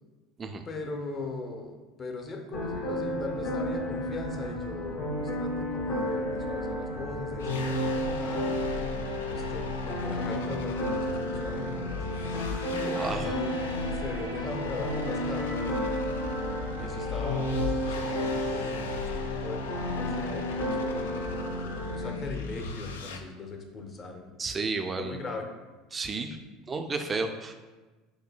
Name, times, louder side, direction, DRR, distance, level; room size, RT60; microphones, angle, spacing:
voice 1, 0.7-9.0 9.3-12.3 12.9-13.5 13.8-16.2 16.8-24.6 25.0-25.5, left 3 dB, 35° left, 3 dB, 0.7 m, -40 dB
sound 1, 2.5-22.1, left 1 dB, 60° left, 1.0 m, -32 dB
sound 2, 7.4-23.2, left 4 dB, 80° left, 0.3 m, -39 dB
sound 3, 12.1-18.7, right 2 dB, 75° right, 0.7 m, -43 dB
voice 2, 12.8-13.4 24.4-25.2 25.9-26.4 26.7-27.5, right 4 dB, 25° right, 6 dB, 0.4 m, -32 dB
6.0 x 2.7 x 2.3 m, 1.2 s
hypercardioid pair, 75°, 0 cm